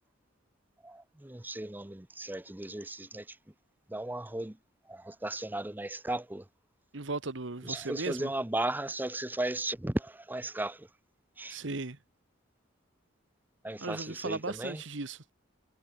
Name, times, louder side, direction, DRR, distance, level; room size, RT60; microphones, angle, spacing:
voice 1, 0.8-3.4 3.9-4.6 4.8-6.5 7.6-10.9 11.4-11.6 13.6-14.8, right 1 dB, 10° right, 0.7 m, -36 dB
voice 2, 6.9-8.3 11.5-12.0 13.8-15.3, right 3 dB, 65° right, 1.4 m, -37 dB
head